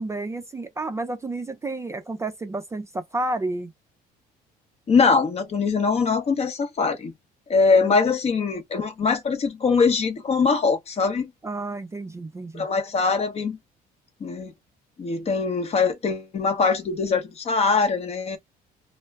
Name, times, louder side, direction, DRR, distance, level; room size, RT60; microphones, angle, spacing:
voice 1, 0.0-3.7 7.8-8.0 11.4-12.7, right 2 dB, 15° right, 0.4 m, -31 dB
voice 2, 4.9-7.1 7.5-11.3 12.5-13.6 14.2-14.5 15.0-18.4, left 4 dB, 40° left, 0.7 m, -22 dB
2.2 x 2.0 x 3.4 m
cardioid pair, 110°, 17 cm